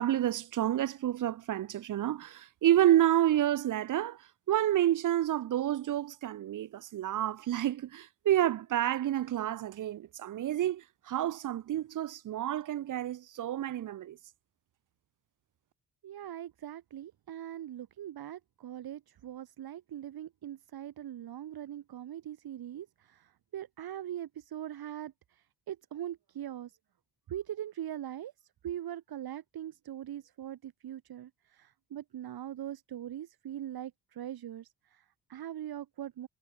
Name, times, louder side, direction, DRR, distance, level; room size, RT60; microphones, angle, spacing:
voice 1, 0.0-4.2 4.5-14.2, right 12 dB, 55° right, 0.7 m, -29 dB
voice 2, 16.0-26.8 27.3-36.3, right 11 dB, 70° right, 2.8 m, -41 dB
supercardioid pair, 55°, 38 cm